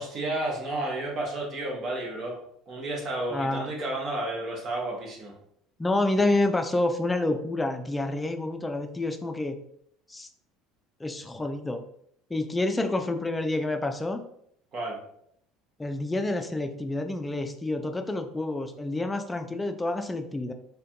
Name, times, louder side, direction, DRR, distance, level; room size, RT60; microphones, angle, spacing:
voice 1, 0.0-2.4 2.7-5.3 14.7-15.0, right 2 dB, 45° right, -3 dB, 0.9 m, -31 dB
voice 2, 3.3-3.7 5.8-9.5 10.1-10.3 11.0-11.8 12.3-14.2 15.8-20.5, left 2 dB, 15° left, 5 dB, 0.3 m, -28 dB
2.6 x 2.2 x 2.2 m, 0.70 s
hypercardioid pair, 65°, 0 cm